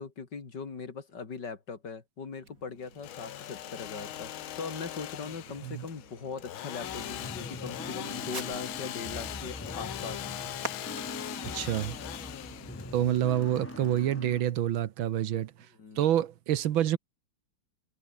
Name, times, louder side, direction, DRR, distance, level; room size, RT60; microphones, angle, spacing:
voice 1, 0.0-10.4 12.6-12.9 15.8-16.0, left 5 dB, 55° left, 3.7 m, -40 dB
Fireworks, 2.4-13.1, right 2 dB, 40° right, 7.5 m, -49 dB
Engine / Sawing, 2.8-14.5, left 12 dB, 75° left, 1.8 m, -41 dB
sound 1, 6.8-14.4, left 1 dB, 10° left, 1.2 m, -42 dB
voice 2, 11.4-12.0 12.9-15.5 16.0-17.0, right 11 dB, 70° right, 1.7 m, -27 dB
omnidirectional pair, 2.3 m